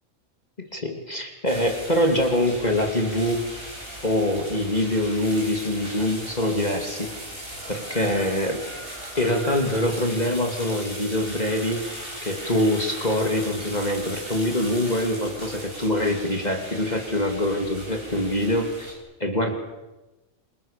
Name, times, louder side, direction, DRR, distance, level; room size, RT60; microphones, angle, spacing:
voice 1, 0.6-3.5 4.0-7.1 7.7-8.6 9.2-19.5, left 1 dB, 30° left, 3 dB, 2.9 m, -24 dB
sound 1, 1.5-18.9, right 1 dB, 40° right, 8.2 m, -38 dB
28.5 x 25.5 x 6.9 m, 1.1 s
omnidirectional pair, 1.4 m